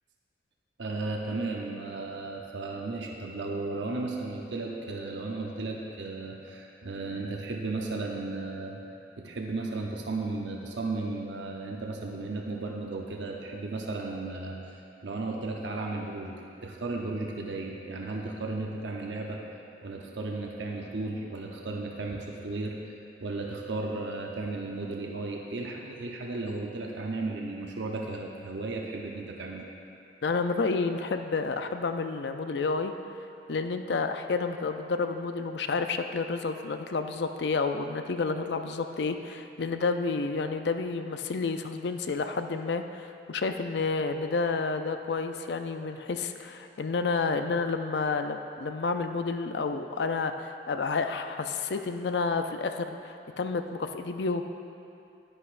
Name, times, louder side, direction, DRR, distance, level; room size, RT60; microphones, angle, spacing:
voice 1, 0.8-8.8 9.2-14.7 15.0-19.4 19.8-22.8 23.2-29.6, right 3 dB, 85° right, 0 dB, 0.7 m, -35 dB
voice 2, 30.2-32.9 33.5-54.4, left 4 dB, 70° left, 7 dB, 0.5 m, -30 dB
11.0 x 10.0 x 2.5 m, 2.7 s
head